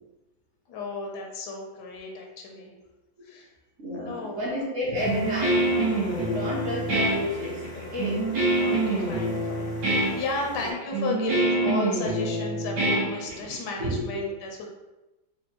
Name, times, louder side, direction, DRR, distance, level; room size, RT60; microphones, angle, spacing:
voice 1, 0.7-2.7 3.2-3.5 3.9-4.4 6.3-6.6 8.5-14.7, left 3 dB, 85° left, 1 dB, 1.3 m, -34 dB
voice 2, 3.8-5.8 6.2-8.3 10.5-10.7 13.8-14.2, equal, 55° right, -5 dB, 0.9 m, -31 dB
sound 1, 4.9-10.7, left 2 dB, 40° left, 0.5 m, -42 dB
Guitar, 5.0-13.7, right 2 dB, 75° right, 1.6 m, -26 dB
4.3 x 2.3 x 2.8 m, 1.0 s
omnidirectional pair, 1.8 m